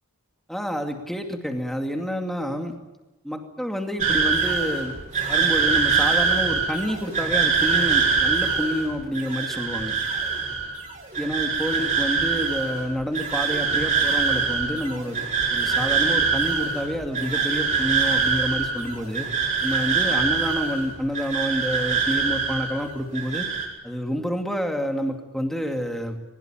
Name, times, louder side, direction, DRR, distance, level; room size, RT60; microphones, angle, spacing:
voice 1, 0.5-2.7 3.2-4.9 5.3-10.0 11.2-15.2 15.5-19.3 19.6-23.5 23.8-26.2, equal, ahead, 3 dB, 2.4 m, -28 dB
sound 1, 4.0-22.9 23.1-23.7, right 5 dB, 35° right, 6.9 m, -24 dB
22.5 x 21.0 x 9.2 m, 1.0 s
head